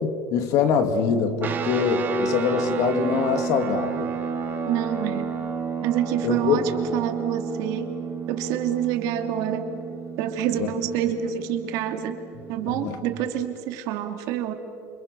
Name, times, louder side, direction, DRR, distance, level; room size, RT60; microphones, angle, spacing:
voice 1, 0.0-4.1 6.2-6.6 10.6-10.7 12.7-13.0, left 6 dB, 60° left, 8 dB, 2.5 m, -24 dB
sound 1, 1.4-13.1, right 6 dB, 30° right, 2.8 m, -31 dB
voice 2, 4.7-5.3 5.8-7.9 8.3-9.7 10.2-12.2 12.5-14.5, right 10 dB, 65° right, 6 dB, 2.7 m, -27 dB
28.5 x 26.0 x 6.9 m, 2.5 s
cardioid pair, 145°, 6 cm